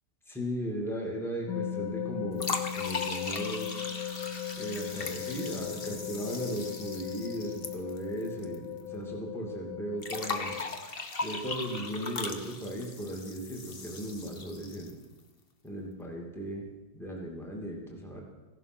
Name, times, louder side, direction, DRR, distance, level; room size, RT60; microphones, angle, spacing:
voice 1, 0.3-3.8 4.6-10.6 11.2-15.0 15.6-16.7 16.9-18.2, right 1 dB, ahead, -1 dB, 2.3 m, -37 dB
sound 1, 1.5-10.6, left 10 dB, 65° left, 1.3 m, -38 dB
sound 2, 2.4-8.5 8.8-8.9 10.0-15.0, left 4 dB, 40° left, 1.0 m, -38 dB
16.0 x 11.5 x 6.2 m, 1.1 s
omnidirectional pair, 2.2 m